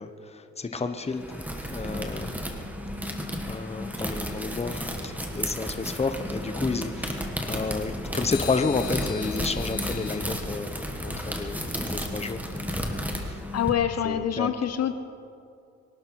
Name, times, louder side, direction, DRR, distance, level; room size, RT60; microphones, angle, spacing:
voice 1, 0.0-2.3 3.4-10.7 11.0-13.4 14.0-14.5, left 4 dB, 20° left, 8 dB, 1.1 m, -31 dB
sound 1, 0.7-1.9 8.3-10.2, left 9 dB, 85° left, 1.9 m, -42 dB
sound 2, 1.1-13.7, equal, 5° right, 2.0 m, -33 dB
voice 2, 13.5-14.9, left 9 dB, 55° left, 9 dB, 0.8 m, -25 dB
24.0 x 12.0 x 4.8 m, 2.5 s
cardioid pair, 90°, 30 cm